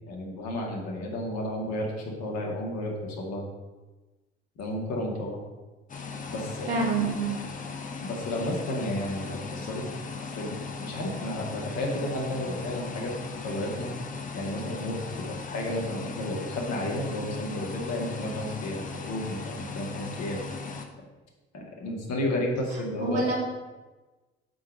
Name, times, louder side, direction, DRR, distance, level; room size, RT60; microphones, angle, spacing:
voice 1, 0.1-1.9 2.2-3.4 4.6-5.4 6.3-6.7 8.0-9.9 10.3-10.5 10.8-13.1 13.4-13.9 14.3-19.4 19.7-20.4 21.5-23.4, left 1 dB, 50° left, 0 dB, 2.0 m, -32 dB
sound 1, 5.9-20.9, left 4 dB, 25° left, 0.9 m, -38 dB
voice 2, 6.7-7.4 23.0-23.4, right 3 dB, 75° right, -3 dB, 2.0 m, -26 dB
8.4 x 3.8 x 6.1 m, 1.2 s
figure-of-eight pair, 55°, 33 cm